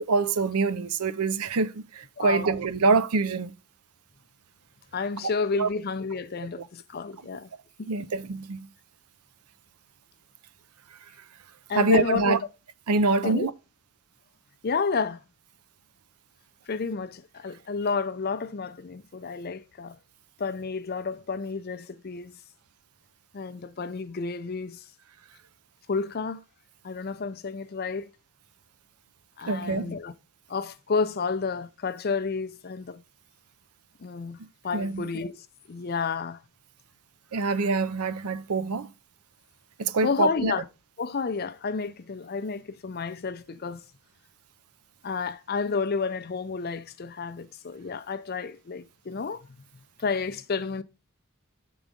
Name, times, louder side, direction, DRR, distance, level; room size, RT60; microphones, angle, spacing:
voice 1, 0.0-3.5 5.6-5.7 6.6-6.7 7.9-8.7 11.7-12.4 12.9-13.5 29.5-29.9 34.7-35.0 37.3-38.9 39.8-40.5, right 3 dB, 85° right, 0.6 m, -25 dB
voice 2, 2.2-2.5 4.9-7.5 7.8-7.9 11.7-12.3 13.2-13.5 14.6-15.2 16.7-20.0 20.4-22.4 23.3-24.8 25.9-26.4 26.8-28.1 29.4-30.1 30.5-33.0 34.0-34.4 34.6-36.4 40.0-40.6 41.0-43.8 45.0-49.5 50.0-50.8, left 4 dB, 45° left, 0.5 m, -31 dB
7.2 x 3.9 x 5.0 m
head